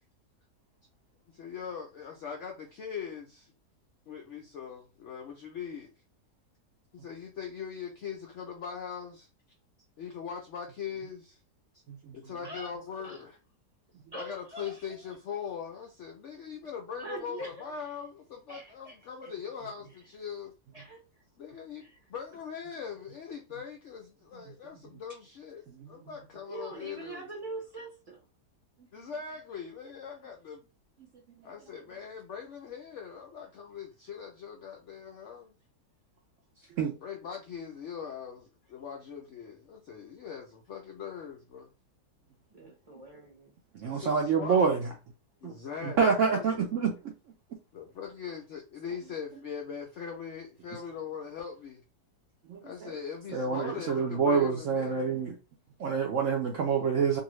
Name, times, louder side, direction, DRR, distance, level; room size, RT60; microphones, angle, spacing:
voice 1, 1.3-3.5 4.1-5.9 6.9-9.3 10.0-11.4 12.1-13.4 14.1-20.5 21.4-21.8 22.1-27.2 28.9-30.7 31.4-35.6 37.0-41.7 43.8-44.6 45.4-46.7 47.7-51.8 52.6-55.2, left 7 dB, 70° left, 0.7 m, -41 dB
voice 2, 14.1-15.1 17.0-17.9 18.5-19.3 20.7-21.2 21.8-22.0 26.5-28.3 42.5-43.5, right 2 dB, 30° right, 0.7 m, -44 dB
voice 3, 43.7-44.9 45.8-46.9 52.5-52.9 53.3-55.3 55.8-57.2, right 5 dB, 70° right, 0.7 m, -27 dB
2.6 x 2.5 x 3.0 m
omnidirectional pair, 1.8 m